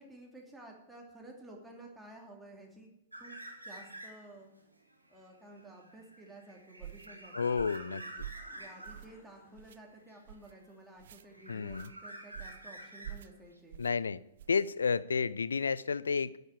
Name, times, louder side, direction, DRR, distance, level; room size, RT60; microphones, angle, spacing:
voice 1, 0.0-3.4 3.6-4.5 5.1-8.1 8.6-13.8, right 2 dB, 5° right, -1 dB, 2.8 m, -53 dB
sound 1, 3.1-4.4 4.8-9.1 10.1-10.9 11.2-13.6, right 1 dB, 90° right, 2.1 m, -48 dB
sound 2, 6.8-7.1 7.5-7.9 8.2-8.5 8.8-9.2 9.5-9.8 10.3-10.5 11.0-11.2 11.7-11.9 12.3-12.6 13.0-13.3 13.7-13.9 14.4-14.6, right 11 dB, 55° right, 0.4 m, -47 dB
voice 2, 7.3-8.0 11.5-11.9 13.8-14.2 14.5-16.3, left 5 dB, 70° left, 19 dB, 0.4 m, -31 dB
sound 3, 8.2-10.5, left 2 dB, 30° left, 3.1 m, -65 dB
10.0 x 8.0 x 8.3 m, 0.89 s
figure-of-eight pair, 110°, 0 cm